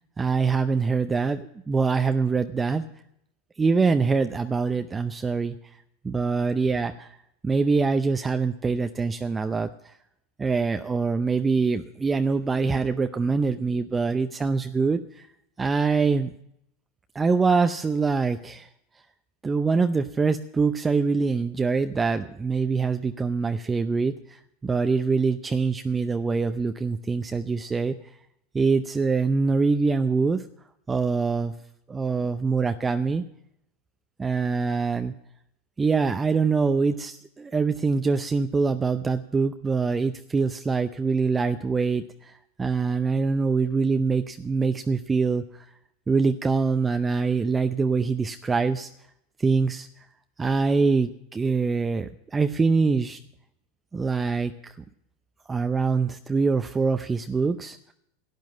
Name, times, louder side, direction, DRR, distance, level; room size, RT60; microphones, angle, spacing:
voice 1, 0.2-1.4 1.7-2.8 3.6-5.5 6.0-7.2 7.4-9.7 10.4-15.3 15.6-16.3 17.1-18.7 19.4-27.9 28.5-30.5 30.9-31.5 31.9-33.2 34.2-35.1 35.8-45.6 46.1-48.9 49.4-49.9 50.4-53.2 53.9-54.8 55.5-57.8, right 4 dB, 20° right, 8 dB, 0.6 m, -24 dB
12.0 x 9.3 x 7.6 m, 0.75 s
hypercardioid pair, 95°, 0 cm